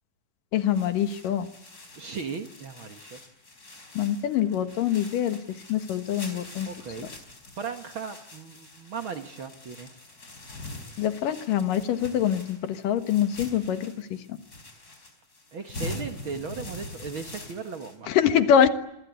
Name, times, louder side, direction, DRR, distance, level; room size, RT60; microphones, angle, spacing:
voice 1, 0.5-1.5 4.0-5.4 5.7-6.7 11.0-13.9 18.1-18.7, left 9 dB, 85° left, 9 dB, 3.2 m, -24 dB
sound 1, 0.6-18.0, left 1 dB, 25° left, 4.9 m, -44 dB
voice 2, 2.0-3.2 6.7-7.1 7.6-9.9 15.5-18.1, right 5 dB, 50° right, 7 dB, 1.8 m, -37 dB
27.0 x 21.0 x 9.6 m, 0.80 s
omnidirectional pair, 3.7 m